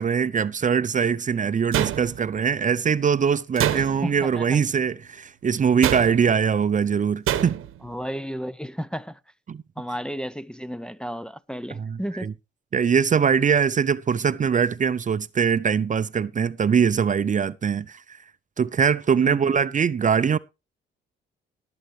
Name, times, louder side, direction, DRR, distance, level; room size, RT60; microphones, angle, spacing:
voice 1, 0.0-7.6 9.5-9.6 11.8-12.3 12.7-18.2 18.6-20.4, right 6 dB, 35° right, 0.6 m, -22 dB
sound 1, 1.7-2.5 3.6-4.2 5.8-6.4 7.3-7.8, right 11 dB, 85° right, 1.1 m, -26 dB
voice 2, 3.7-4.6 7.8-9.2 9.8-12.3 19.2-19.5, equal, 5° left, 0.6 m, -33 dB
19.0 x 7.9 x 3.2 m
cardioid pair, 80°, 21 cm